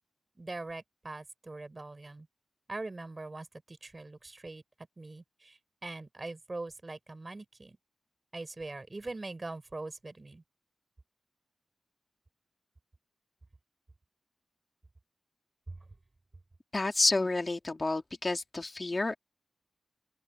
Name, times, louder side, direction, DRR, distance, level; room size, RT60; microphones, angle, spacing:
voice 1, 0.4-2.3 2.7-4.6 5.0-7.8 8.3-10.4 15.7-15.8, right 2 dB, 40° right, 6.6 m, -42 dB
voice 2, 16.7-19.2, left 2 dB, 40° left, 3.0 m, -29 dB
open air
cardioid pair, 55°, 0 cm